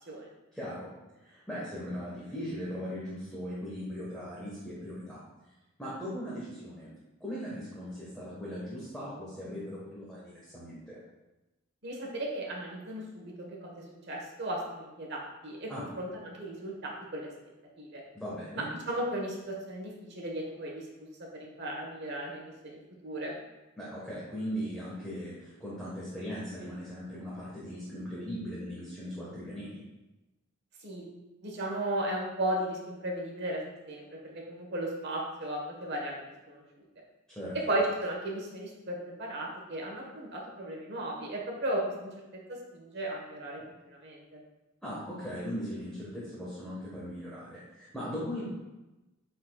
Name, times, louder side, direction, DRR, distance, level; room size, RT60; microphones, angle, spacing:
voice 1, 0.5-0.9 1.2-5.2 5.8-6.9 7.2-11.0 15.7-15.8 18.1-18.7 23.8-29.8 37.3-37.6 44.8-48.5, equal, 5° left, -9 dB, 1.4 m, -39 dB
voice 2, 11.8-17.3 17.8-18.0 18.9-20.8 21.2-23.3 30.8-31.0 31.4-33.6 33.9-36.1 36.5-36.6 37.7-42.2 42.5-44.4, right 1 dB, 55° right, -1 dB, 1.3 m, -35 dB
9.5 x 4.3 x 2.4 m, 1.0 s
head